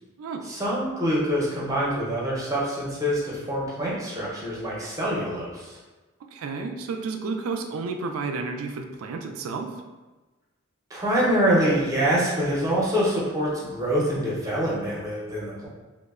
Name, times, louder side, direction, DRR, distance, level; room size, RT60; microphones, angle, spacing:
voice 1, 0.5-5.8 10.9-15.7, equal, 15° right, -6 dB, 0.6 m, -25 dB
voice 2, 6.3-9.8, right 4 dB, 85° right, 5 dB, 0.3 m, -31 dB
3.0 x 2.1 x 2.3 m, 1.2 s
head